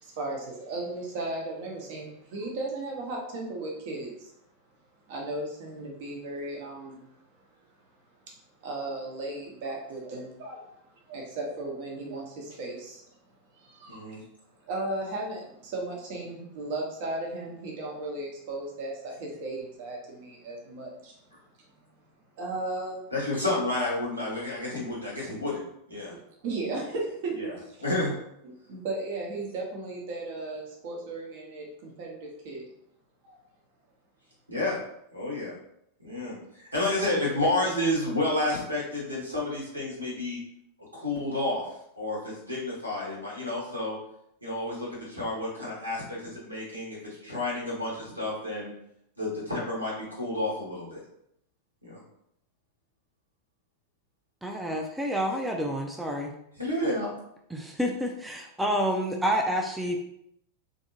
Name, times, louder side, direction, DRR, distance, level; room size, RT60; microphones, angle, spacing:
voice 1, 0.0-4.3 5.1-7.0 8.6-10.7 11.1-13.0 13.5-14.3 14.7-21.1 22.4-23.0 26.1-27.8 28.4-32.6 33.2-33.4, right 2 dB, 50° right, -1 dB, 0.9 m, -36 dB
voice 2, 13.9-14.2 23.1-25.6 25.9-26.1 27.4-27.5 27.8-28.1 34.5-34.8 35.1-35.5 36.0-40.4 40.9-41.6 42.0-44.0 44.4-48.7 49.2-51.0 51.8-52.0 56.6-57.1, left 2 dB, 85° right, -5 dB, 1.3 m, -30 dB
voice 3, 54.4-56.3 57.5-60.0, equal, 5° right, 1 dB, 0.4 m, -29 dB
3.5 x 2.7 x 2.7 m, 0.75 s
figure-of-eight pair, 90°, 0 cm